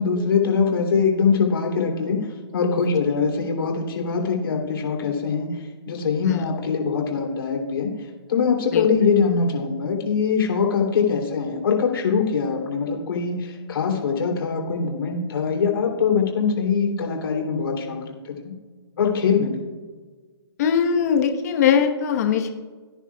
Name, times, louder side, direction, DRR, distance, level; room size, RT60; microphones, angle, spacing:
voice 1, 0.0-2.3 2.5-18.0 18.4-18.5 19.0-19.5, left 5 dB, 55° left, 0 dB, 3.2 m, -23 dB
voice 2, 20.6-22.5, left 7 dB, 35° left, 5 dB, 1.2 m, -21 dB
18.0 x 10.0 x 2.4 m, 1.4 s
hypercardioid pair, 155°, 14 cm